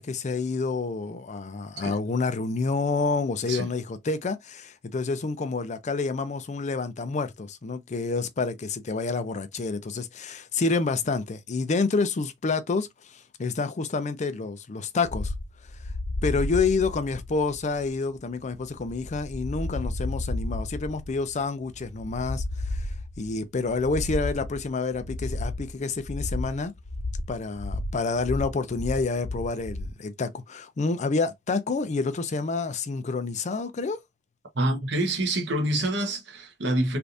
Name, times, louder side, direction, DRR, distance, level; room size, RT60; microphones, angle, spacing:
voice 1, 0.0-15.3 16.2-22.4 22.7-22.9 23.2-26.7 27.3-34.0, left 4 dB, 40° left, 0.5 m, -28 dB
sound 1, 15.1-30.0, left 2 dB, 60° left, 0.9 m, -33 dB
voice 2, 34.5-37.0, right 1 dB, 70° right, 0.9 m, -26 dB
3.3 x 2.5 x 2.5 m
head